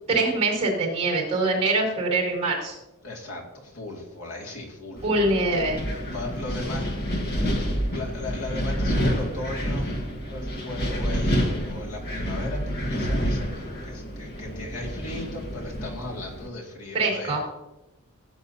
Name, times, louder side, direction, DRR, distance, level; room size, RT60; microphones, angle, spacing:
voice 1, 0.1-2.7 5.0-5.8 16.9-17.4, right 2 dB, 30° right, -6 dB, 4.6 m, -23 dB
voice 2, 3.0-5.1 5.8-6.9 7.3-7.6 7.9-9.9 10.3-17.4, left 2 dB, 75° left, -1 dB, 2.4 m, -37 dB
Wind, 5.0-16.5, equal, 45° left, 1.5 m, -28 dB
16.5 x 9.0 x 2.8 m, 0.97 s
head